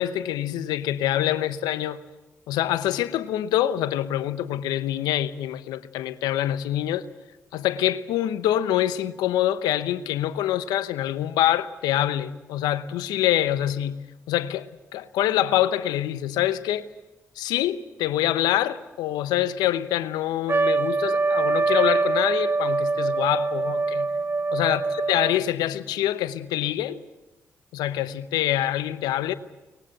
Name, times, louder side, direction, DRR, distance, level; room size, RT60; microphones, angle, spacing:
voice 1, 0.0-2.0 2.5-7.0 7.5-14.0 14.3-16.8 17.4-24.1 24.5-24.8 25.1-27.0 27.7-29.3, left 12 dB, 80° left, 0.9 m, -25 dB
Trumpet, 20.5-25.5, right 3 dB, 35° right, 0.8 m, -24 dB
23.5 x 20.5 x 7.9 m
hypercardioid pair, 40°, 7 cm